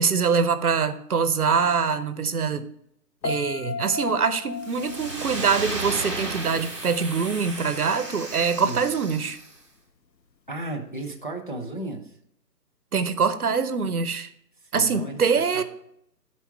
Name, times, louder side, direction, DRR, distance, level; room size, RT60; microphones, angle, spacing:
voice 1, 0.0-2.6 3.2-9.4 12.9-14.3 14.7-15.6, right 5 dB, 60° right, 12 dB, 0.8 m, -24 dB
Piano, 3.2-6.3 6.6-7.0, left 4 dB, 80° left, 0.9 m, -35 dB
sound 1, 4.6-9.5, right 2 dB, 20° right, 0.9 m, -34 dB
voice 2, 10.5-12.1 14.7-15.2 15.5-15.6, right 1 dB, 30° left, 1 dB, 0.6 m, -34 dB
11.0 x 4.7 x 4.5 m, 0.75 s
figure-of-eight pair, 165°, 50 cm